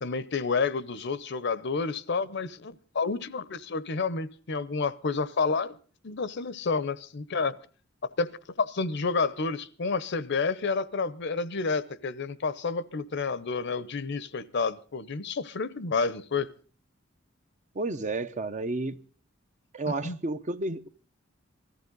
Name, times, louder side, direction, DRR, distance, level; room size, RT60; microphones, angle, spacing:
voice 1, 0.0-5.8 6.0-7.6 8.0-8.3 8.6-16.5 19.9-20.2, left 4 dB, 60° left, 0.7 m, -30 dB
voice 2, 17.7-19.0 19.7-20.9, right 2 dB, 40° right, 0.7 m, -31 dB
20.0 x 14.5 x 3.9 m
head